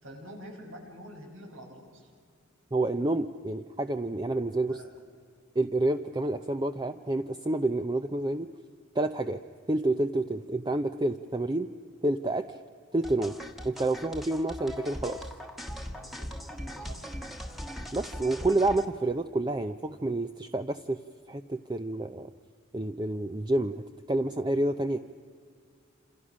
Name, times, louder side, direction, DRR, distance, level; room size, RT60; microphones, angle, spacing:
voice 1, 0.0-2.1 4.8-4.9 15.9-16.3 16.6-17.3, equal, 90° right, 2 dB, 6.1 m, -47 dB
voice 2, 2.7-4.8 5.6-8.5 8.9-9.4 9.7-11.7 12.0-12.6 12.9-13.4 13.6-15.3 17.9-21.0 21.3-22.3 22.7-23.8 24.1-25.0, right 2 dB, 20° right, 8 dB, 0.6 m, -29 dB
sound 1, 13.0-18.8, equal, ahead, 1.4 m, -40 dB
27.5 x 27.5 x 6.2 m, 2.2 s
head